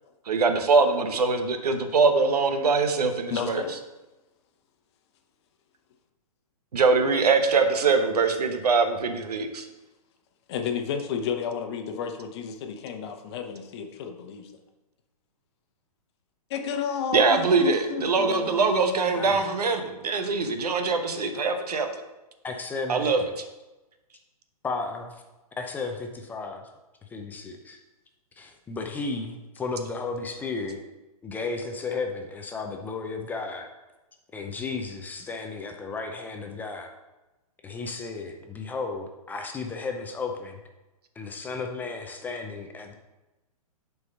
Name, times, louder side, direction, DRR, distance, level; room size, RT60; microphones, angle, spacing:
voice 1, 0.3-3.6 6.7-9.7 17.1-21.9 22.9-23.2, right 4 dB, 85° right, 7 dB, 1.0 m, -23 dB
voice 2, 3.3-3.8 10.5-14.5 16.5-19.6, left 7 dB, 45° left, 6 dB, 0.9 m, -32 dB
voice 3, 19.1-19.5 22.4-23.2 24.6-25.2 25.6-26.7 27.0-27.8 28.4-30.8 31.2-33.7 34.3-36.9 37.6-40.6 41.2-42.9, left 4 dB, 10° left, 3 dB, 0.5 m, -34 dB
6.6 x 4.7 x 5.4 m, 1.1 s
hypercardioid pair, 140°, 20 cm